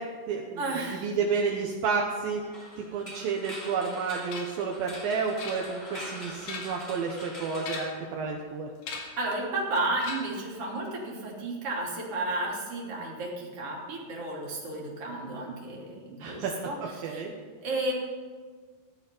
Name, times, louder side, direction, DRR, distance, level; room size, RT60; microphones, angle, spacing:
voice 1, 0.0-0.6 0.9-2.4 2.8-8.7 16.2-16.5 16.8-17.3, right 5 dB, 75° right, 0 dB, 2.8 m, -31 dB
voice 2, 0.6-1.2 9.2-16.8 17.0-17.2 17.6-17.9, right 2 dB, 40° right, -3 dB, 3.6 m, -32 dB
sound 1, 2.5-8.5, left 1 dB, 15° left, 2.9 m, -44 dB
sound 2, 4.3-4.7 5.4-6.0 6.3-6.9 7.6-8.1 8.8-9.3 10.0-10.5, left 4 dB, 85° left, 4.0 m, -40 dB
14.5 x 11.5 x 5.3 m, 1.5 s
omnidirectional pair, 4.4 m